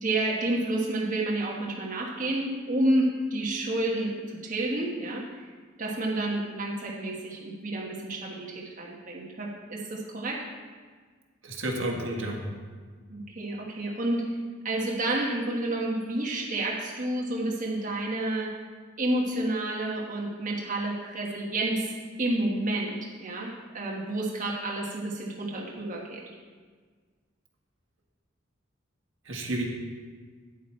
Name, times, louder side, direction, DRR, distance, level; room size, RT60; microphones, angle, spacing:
voice 1, 0.0-5.5 5.8-10.4 13.1-14.2 14.6-18.5 19.0-21.9 22.2-26.2, right 1 dB, 45° right, -3 dB, 1.2 m, -30 dB
voice 2, 11.4-12.4 29.3-29.6, right 1 dB, 80° right, -1 dB, 1.7 m, -31 dB
9.2 x 8.4 x 4.4 m, 1.5 s
head